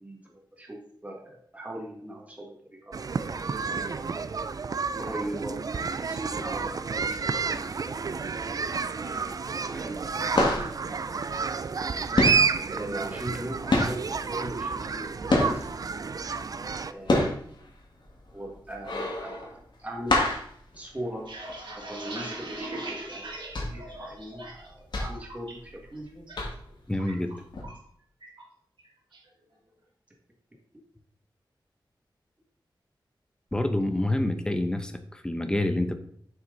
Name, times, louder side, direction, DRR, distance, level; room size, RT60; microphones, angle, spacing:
voice 1, 0.0-3.0 3.6-4.2 5.0-7.9 9.0-10.3 12.7-15.7 16.9-17.6 18.3-20.4 20.7-21.3 21.8-23.3 23.6-26.2, right 1 dB, 15° right, -1 dB, 1.9 m, -40 dB
sound 1, 2.9-16.9, right 5 dB, 45° right, 0.3 m, -30 dB
sound 2, 9.5-9.7 9.9-11.9 12.1-15.9 16.3-21.6 22.0-22.1 22.4-22.7 23.2-26.0 26.3-26.8 27.5-27.6, left 2 dB, 65° left, 1.8 m, -27 dB
sound 3, 21.0-24.7 25.0-25.5 25.9-26.4 26.6-27.9 28.2-28.4 28.8-29.3, right 1 dB, 70° right, 2.4 m, -40 dB
voice 2, 26.9-27.3 33.5-35.9, left 1 dB, 10° left, 8 dB, 0.8 m, -27 dB
7.4 x 6.1 x 3.9 m, 0.62 s
wide cardioid pair, 125°, 8 cm